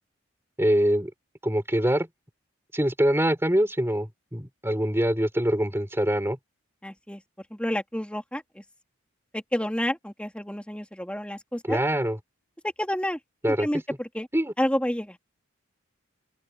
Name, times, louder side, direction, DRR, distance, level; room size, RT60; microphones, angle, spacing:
voice 1, 0.6-1.1 1.4-2.1 2.7-6.4 11.7-12.2 13.4-13.7 14.3-14.5, equal, 10° right, 3.7 m, -24 dB
voice 2, 6.8-7.2 7.5-8.6 9.3-11.8 12.8-13.2 13.6-14.3 14.6-15.2, equal, 5° left, 3.0 m, -29 dB
open air
head